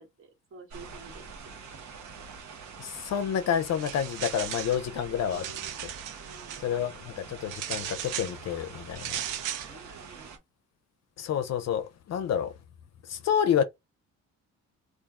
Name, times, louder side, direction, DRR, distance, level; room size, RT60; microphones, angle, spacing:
voice 1, 0.0-1.6 4.9-5.8 6.2-6.9 9.2-10.4, right 4 dB, 45° right, 1.5 m, -50 dB
sound 1, 0.7-10.4, right 5 dB, 65° right, 0.9 m, -45 dB
voice 2, 2.8-5.5 5.8-5.9 6.6-9.2 11.2-12.5 13.0-13.6, left 8 dB, 60° left, 0.5 m, -29 dB
sound 2, 3.7-4.8 5.2-6.6 7.5-8.4 9.0-9.7, right 10 dB, 90° right, 0.6 m, -36 dB
2.5 x 2.2 x 3.6 m
cardioid pair, 90°, 30 cm